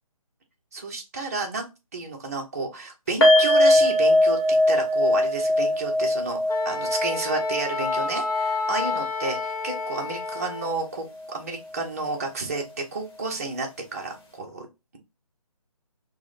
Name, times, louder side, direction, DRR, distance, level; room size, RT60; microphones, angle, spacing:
voice 1, 0.7-1.7 1.9-14.7, right 3 dB, 25° right, 1 dB, 0.6 m, -31 dB
sound 1, 3.2-10.4 10.7-10.9 11.2-11.3, left 1 dB, 40° left, 1.2 m, -22 dB
Wind instrument woodwind instrument, 6.5-10.8, left 4 dB, 75° left, 0.8 m, -30 dB
4.6 x 2.1 x 2.4 m, 0.26 s
hypercardioid pair, 165°, 19 cm